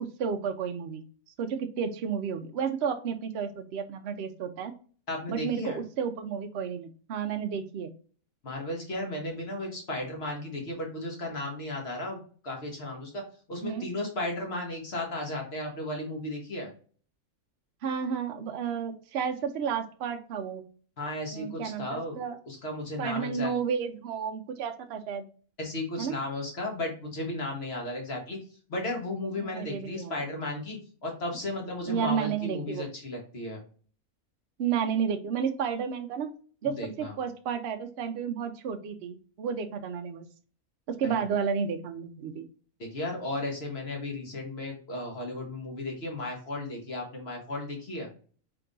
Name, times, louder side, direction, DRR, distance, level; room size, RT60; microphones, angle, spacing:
voice 1, 0.2-1.0 1.4-4.7 5.3-7.9 13.6-13.9 17.8-20.6 21.3-22.4 23.0-25.2 26.0-26.2 29.4-30.1 31.9-32.9 34.6-36.3 36.6-40.3 41.0-42.5, right 7 dB, 55° right, 7 dB, 0.7 m, -32 dB
voice 2, 5.1-5.8 8.4-13.2 13.5-16.7 21.0-22.2 22.5-23.5 25.6-28.4 28.7-33.6 36.6-37.1 41.0-41.2 42.8-48.1, left 2 dB, 45° left, 1 dB, 1.5 m, -35 dB
3.8 x 3.5 x 3.8 m, 0.41 s
omnidirectional pair, 1.6 m